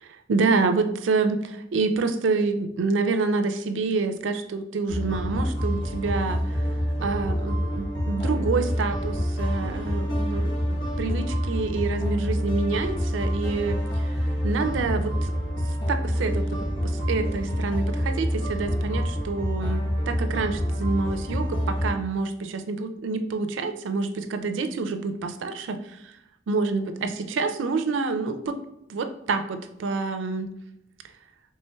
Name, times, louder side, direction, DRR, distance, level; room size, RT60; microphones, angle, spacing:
voice 1, 0.3-6.4 7.0-13.8 14.4-15.3 15.9-25.8 26.0-26.1 26.5-28.6 28.9-30.5, right 4 dB, 90° right, 9 dB, 0.4 m, -27 dB
sound 1, 4.9-21.9, equal, 75° left, 1.2 m, -27 dB
4.3 x 3.2 x 2.2 m, 0.81 s
head